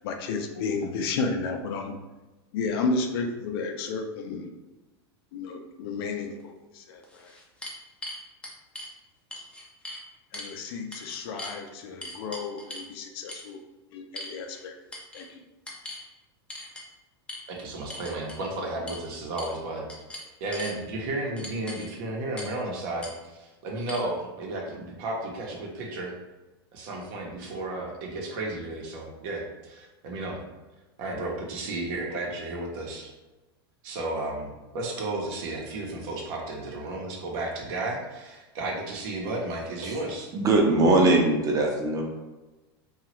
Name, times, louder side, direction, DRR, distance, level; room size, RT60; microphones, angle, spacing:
voice 1, 0.0-1.9 2.5-4.5 5.3-7.3 10.3-13.6 13.9-14.7 15.1-15.4, left 4 dB, 65° left, 4 dB, 0.5 m, -32 dB
sound 1, 6.4-6.5 7.0-8.9 9.3-10.0 10.3-10.6 10.9-11.6 12.0-12.9 13.3-13.5 14.2-14.6 14.9-15.3 15.7-16.0 16.5-16.9 17.3-17.4 17.9-18.4 18.9-19.0 19.4-19.6 19.9-20.8 21.4-21.9 22.4-22.6 23.0-23.1 23.9-24.0, left 1 dB, 10° left, 0.5 m, -40 dB
voice 2, 17.5-19.9 20.4-26.1 26.7-30.4 31.0-33.1 33.8-40.3, right 2 dB, 60° right, -1 dB, 0.9 m, -33 dB
voice 3, 40.3-42.0, right 2 dB, 25° right, 0 dB, 0.7 m, -21 dB
2.8 x 2.3 x 3.0 m, 1.1 s
supercardioid pair, 125°, 13 cm